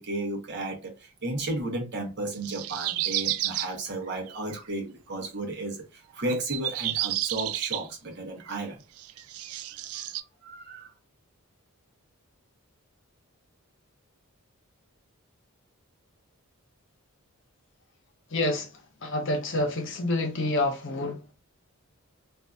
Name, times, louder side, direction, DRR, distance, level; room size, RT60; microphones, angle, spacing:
voice 1, 0.0-8.8 10.4-10.9, right 2 dB, 50° right, 0.8 m, -33 dB
sound 1, 2.3-3.7 4.3-4.5 6.3-7.9 8.4-8.5 9.0-10.2, right 14 dB, 80° right, 0.3 m, -31 dB
voice 2, 18.3-21.3, left 2 dB, 55° left, 0.7 m, -28 dB
2.6 x 2.4 x 2.2 m
head